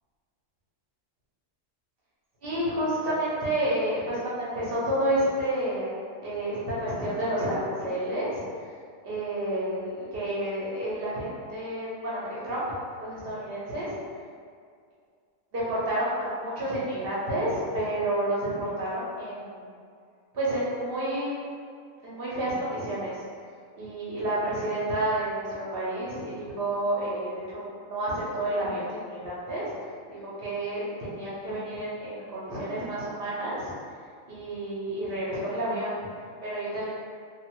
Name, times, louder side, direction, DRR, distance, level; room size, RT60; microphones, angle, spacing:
voice 1, 2.4-5.9 6.2-8.5 9.0-12.6 13.0-14.0 15.5-19.7 20.3-21.4 22.0-23.2 23.8-29.7 30.1-33.7 34.3-36.0 36.4-36.9, right 1 dB, 55° right, -8 dB, 0.6 m, -30 dB
2.6 x 2.5 x 2.9 m, 2.2 s
omnidirectional pair, 1.7 m